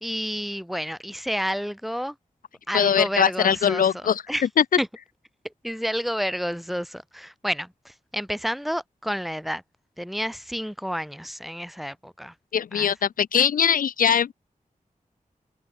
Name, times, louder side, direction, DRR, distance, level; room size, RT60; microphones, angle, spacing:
voice 1, 0.0-2.1 2.7-3.8 4.3-4.4 4.8-4.9 5.6-9.6 10.0-12.3 12.7-12.9, equal, ahead, 1.3 m, -30 dB
voice 2, 2.7-4.2 4.6-4.7 12.5-14.3, left 8 dB, 85° left, 0.5 m, -21 dB
open air
wide cardioid pair, 125°, 14 cm